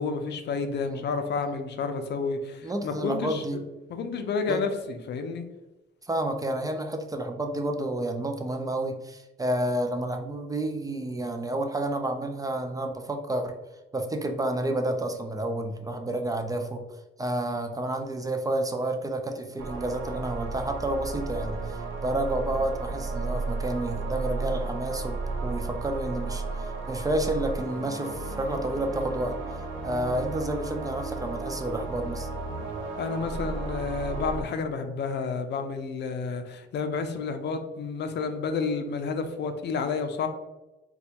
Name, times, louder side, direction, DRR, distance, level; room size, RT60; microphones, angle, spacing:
voice 1, 0.0-3.6 3.9-5.4 33.0-40.3, left 4 dB, 60° left, 7 dB, 0.5 m, -30 dB
voice 2, 2.6-3.6 4.5-4.6 6.0-13.5 13.9-16.8 17.2-29.4 29.8-32.3, right 1 dB, 20° right, 5 dB, 0.4 m, -30 dB
sound 1, 19.6-34.4, right 3 dB, 85° right, 0.5 m, -33 dB
4.1 x 2.3 x 2.8 m, 1.0 s
cardioid pair, 90°, 20 cm